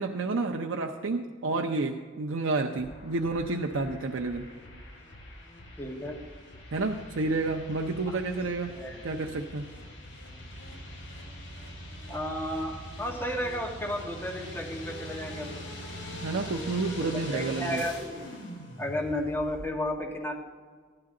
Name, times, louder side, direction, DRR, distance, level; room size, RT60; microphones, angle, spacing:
voice 1, 0.0-4.5 6.7-8.8 9.0-9.7 16.1-17.8, right 3 dB, 80° right, 2 dB, 0.6 m, -30 dB
sound 1, 2.8-19.7, equal, 75° left, 4.6 m, -43 dB
voice 2, 5.8-6.2 8.1-8.2 8.7-9.0 12.1-15.6 16.4-16.5 17.0-18.0 18.8-20.3, left 1 dB, 10° left, -2 dB, 1.4 m, -33 dB
15.5 x 11.0 x 3.8 m, 1.6 s
head